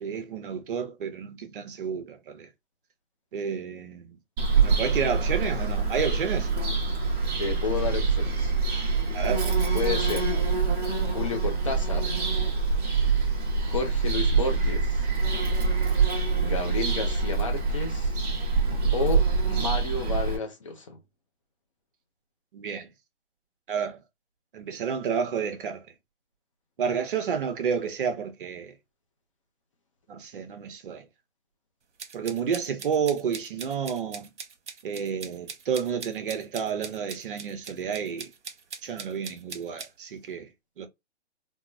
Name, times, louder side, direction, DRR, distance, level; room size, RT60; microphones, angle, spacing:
voice 1, 0.0-2.5 3.3-4.2 4.6-6.5 9.1-9.5 22.5-22.9 23.7-24.0 24.5-25.8 26.8-28.7 30.1-31.0 32.1-34.3 34.8-38.3 38.8-40.5 40.8-40.9, right 7 dB, 50° right, 0.8 m, -30 dB
Bird vocalization bird call bird song, 4.4-20.4, right 4 dB, 20° right, 0.9 m, -25 dB
voice 2, 7.4-8.5 9.7-10.3 11.1-12.3 13.6-15.1 16.4-18.1 18.9-21.0, left 3 dB, 30° left, 0.5 m, -31 dB
sound 1, 32.0-39.9, right 5 dB, 75° right, 0.9 m, -41 dB
3.6 x 2.1 x 2.4 m
hypercardioid pair, 145°, 35 cm